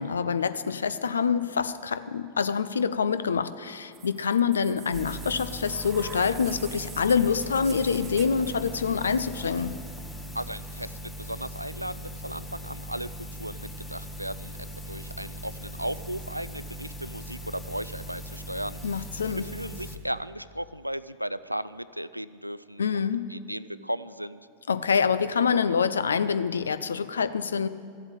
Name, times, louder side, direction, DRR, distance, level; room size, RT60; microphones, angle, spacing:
voice 1, 0.0-9.8 18.8-19.5 22.8-23.3 24.7-27.7, left 6 dB, 70° left, 0.5 m, -26 dB
sound 1, 3.9-11.8 12.9-13.0, right 7 dB, 25° right, 0.8 m, -47 dB
sound 2, 4.9-20.0, equal, 10° left, 1.1 m, -40 dB
voice 2, 10.3-24.5, right 1 dB, 90° right, 0.3 m, -36 dB
14.0 x 8.0 x 8.7 m
figure-of-eight pair, 90°, 0 cm